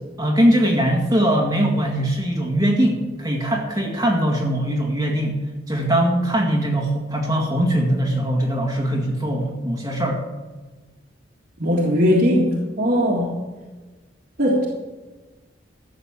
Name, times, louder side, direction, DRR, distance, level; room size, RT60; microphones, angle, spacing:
voice 1, 0.2-5.4 5.7-10.2, right 1 dB, 20° right, 0 dB, 1.9 m, -21 dB
voice 2, 11.6-13.3 14.4-14.7, equal, 55° right, -4 dB, 1.8 m, -19 dB
13.5 x 6.9 x 7.4 m, 1.3 s
head